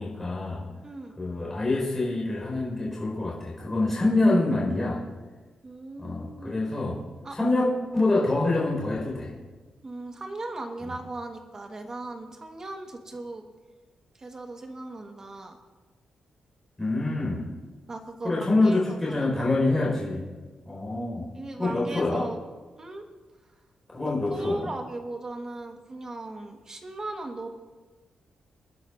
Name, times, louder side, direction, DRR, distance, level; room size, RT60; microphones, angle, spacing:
voice 1, 0.0-0.7 1.2-5.0 6.0-7.0 7.3-9.3 16.8-17.5 18.2-20.2 20.6-21.3 21.6-22.2 23.9-24.7, left 2 dB, 15° left, -5 dB, 4.8 m, -26 dB
voice 2, 0.8-1.1 5.6-6.5 7.2-7.4 8.1-8.2 9.8-13.4 14.1-15.6 17.9-19.3 21.3-22.4 22.8-23.0 24.3-27.5, right 2 dB, 25° right, 4 dB, 1.4 m, -38 dB
27.5 x 10.5 x 2.6 m, 1.3 s
wide cardioid pair, 150°, 2 cm